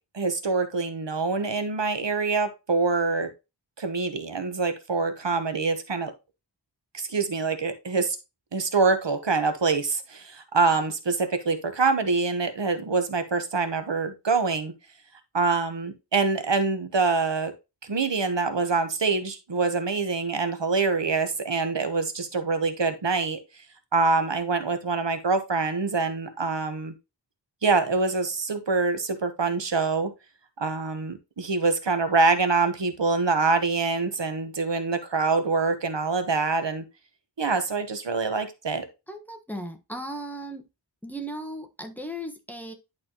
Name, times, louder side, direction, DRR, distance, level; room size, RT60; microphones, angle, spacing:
voice 1, 0.1-3.3 3.8-6.1 6.9-8.2 8.5-14.7 15.3-17.5 17.9-23.4 23.9-26.9 27.6-30.1 30.6-36.8 37.4-38.8, right 4 dB, 70° right, 1.1 m, -25 dB
voice 2, 39.1-40.7 41.0-42.7, right 1 dB, 5° left, 1.3 m, -36 dB
10.5 x 4.3 x 2.9 m
wide cardioid pair, 50°, 45 cm